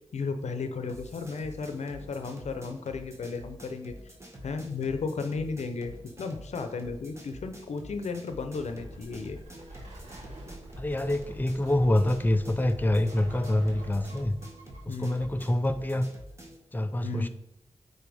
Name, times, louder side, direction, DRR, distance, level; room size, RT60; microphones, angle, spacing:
voice 1, 0.1-3.9 4.4-9.4 14.9-15.3 17.0-17.3, left 4 dB, 85° left, 7 dB, 0.7 m, -34 dB
sound 1, 0.9-16.6, equal, 25° right, 1.8 m, -47 dB
sound 2, 8.6-15.6, right 1 dB, 90° right, 2.5 m, -47 dB
voice 2, 10.8-14.4 14.9-16.1 16.7-17.3, left 1 dB, 15° left, 8 dB, 0.6 m, -26 dB
9.2 x 4.2 x 3.5 m, 0.91 s
cardioid pair, 60°, 11 cm